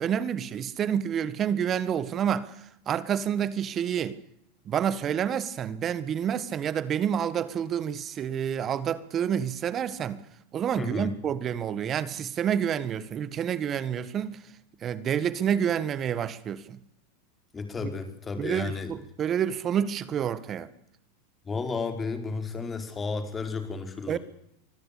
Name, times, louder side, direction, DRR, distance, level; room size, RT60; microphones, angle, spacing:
voice 1, 0.0-2.5 2.9-4.2 4.7-10.2 10.5-14.4 14.8-16.8 17.8-17.9 18.4-20.7 24.1-24.2, right 8 dB, 30° right, 1.7 m, -28 dB
voice 2, 10.8-11.1 17.5-18.9 21.4-24.2, left 4 dB, 15° left, 4.5 m, -32 dB
24.5 x 15.5 x 8.6 m
supercardioid pair, 130°, 0 cm